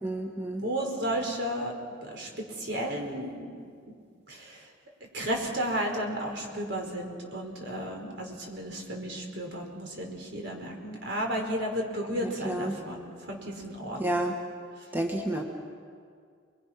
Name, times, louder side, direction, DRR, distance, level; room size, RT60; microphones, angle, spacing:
voice 1, 0.0-0.6 12.2-12.8 14.0-14.4 14.9-15.4, right 1 dB, 10° right, 1 dB, 1.8 m, -30 dB
voice 2, 0.6-1.7 2.0-3.5 4.3-4.6 5.1-14.3, right 1 dB, 65° right, 1 dB, 4.9 m, -33 dB
29.0 x 23.0 x 6.0 m, 2.1 s
head